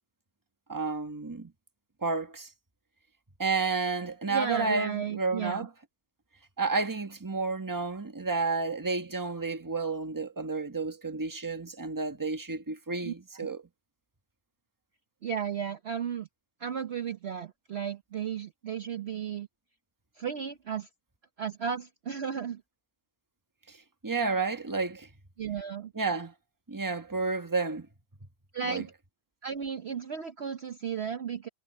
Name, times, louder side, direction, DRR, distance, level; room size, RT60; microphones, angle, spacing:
voice 1, 0.7-1.5 2.0-2.5 3.4-5.7 6.6-13.6 23.7-25.1 25.9-26.3 26.7-27.9 28.6-28.8, right 4 dB, 15° right, 1.4 m, -31 dB
voice 2, 4.3-5.7 13.0-13.1 15.2-16.3 16.6-19.5 20.2-20.9 21.4-22.6 25.4-25.9 28.5-28.9 29.4-31.5, right 7 dB, 50° right, 1.0 m, -34 dB
omnidirectional pair, 1.6 m